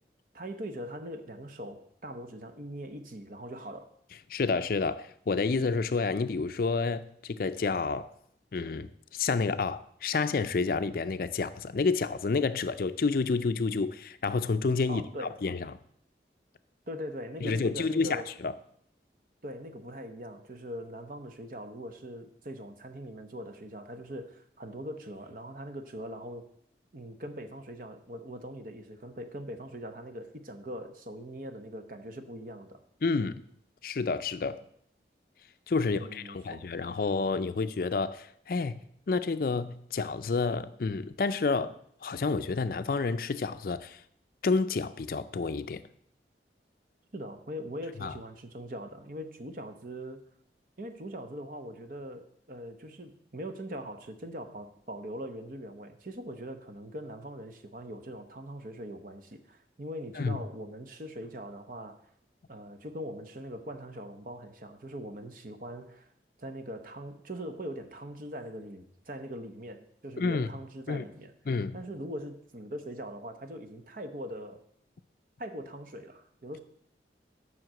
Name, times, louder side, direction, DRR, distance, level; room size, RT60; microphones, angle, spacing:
voice 1, 0.3-3.9 14.9-15.4 16.9-18.3 19.4-26.5 26.9-32.8 35.8-36.7 47.1-50.3 50.8-62.0 62.5-66.1 66.4-71.3 71.7-74.6 75.4-76.6, equal, 50° right, 0.9 m, -41 dB
voice 2, 4.3-8.1 8.5-15.0 15.4-15.6 17.4-18.5 33.0-33.4 33.8-34.6 35.7-38.8 39.1-41.7 42.0-44.0 44.4-45.8 48.0-48.1 60.2-60.4 70.2-70.5 70.9-71.0 71.5-71.8, left 4 dB, 55° left, 0.4 m, -29 dB
7.7 x 5.9 x 7.6 m
head